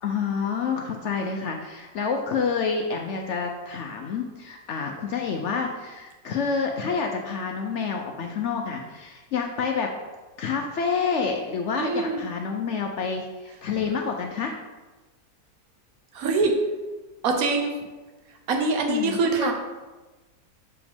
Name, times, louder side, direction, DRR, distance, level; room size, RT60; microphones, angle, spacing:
voice 1, 0.0-9.9 10.4-14.5 18.9-19.5, left 5 dB, 75° left, 2 dB, 0.6 m, -28 dB
voice 2, 11.7-12.3 16.1-16.6 17.2-17.7 18.5-19.5, right 3 dB, 60° right, 3 dB, 1.2 m, -24 dB
7.2 x 4.9 x 3.5 m, 1.2 s
omnidirectional pair, 1.8 m